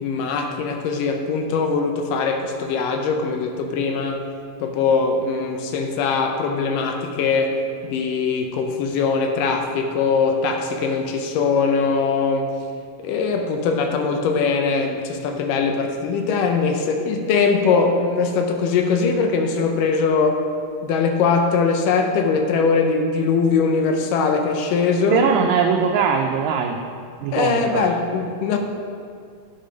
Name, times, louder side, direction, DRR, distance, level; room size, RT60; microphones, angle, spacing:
voice 1, 0.0-4.2 4.6-7.6 7.8-12.4 13.0-20.4 20.8-25.3 27.3-28.6, left 5 dB, 80° left, 4 dB, 2.3 m, -21 dB
voice 2, 25.1-26.8 27.2-27.9, right 6 dB, 85° right, 2 dB, 2.1 m, -20 dB
9.7 x 5.5 x 5.1 m, 2.3 s
omnidirectional pair, 3.9 m